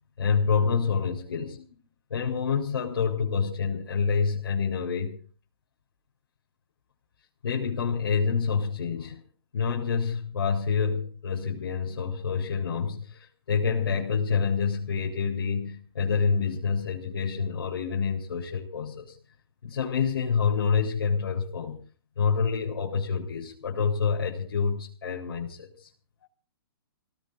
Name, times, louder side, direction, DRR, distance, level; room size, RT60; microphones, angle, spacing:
voice 1, 0.2-1.6 2.1-5.2 7.4-9.2 9.5-19.2 19.6-21.8 22.2-25.9, left 5 dB, 85° left, -3 dB, 3.8 m, -27 dB
30.0 x 18.0 x 2.6 m, 0.40 s
hypercardioid pair, 155°, 12 cm